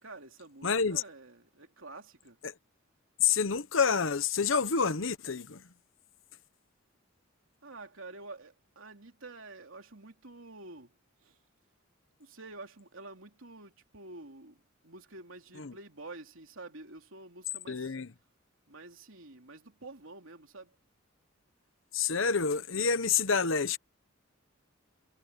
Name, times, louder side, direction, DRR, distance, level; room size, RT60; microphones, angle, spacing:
voice 1, 0.0-2.4 7.6-10.9 11.2-11.4 12.2-17.9 18.7-20.7, right 2 dB, 75° right, 3.1 m, -49 dB
voice 2, 0.6-1.0 2.4-2.5 3.2-5.6 15.6-15.7 17.7-18.1 21.9-23.8, left 5 dB, 70° left, 1.0 m, -28 dB
head